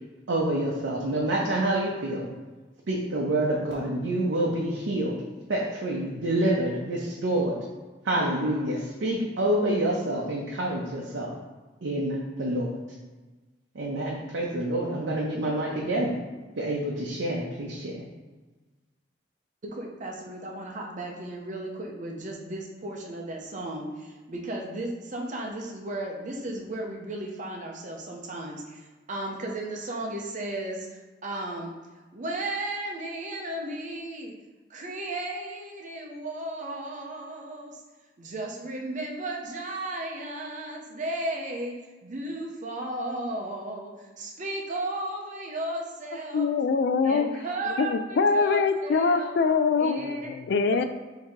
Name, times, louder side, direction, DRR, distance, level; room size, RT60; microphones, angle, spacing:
voice 1, 0.3-2.3 2.9-5.2 5.5-7.6 8.0-11.3 11.8-12.8 13.7-16.2 16.6-18.1, right 1 dB, 85° right, -3 dB, 0.7 m, -27 dB
voice 2, 19.6-31.8 32.1-34.4 34.7-37.8 38.2-46.5 47.0-50.3, right 1 dB, 45° right, 1 dB, 0.7 m, -35 dB
voice 3, 46.3-47.3 47.8-50.8, left 5 dB, 60° left, 9 dB, 0.3 m, -23 dB
3.6 x 2.9 x 4.4 m, 1.2 s
head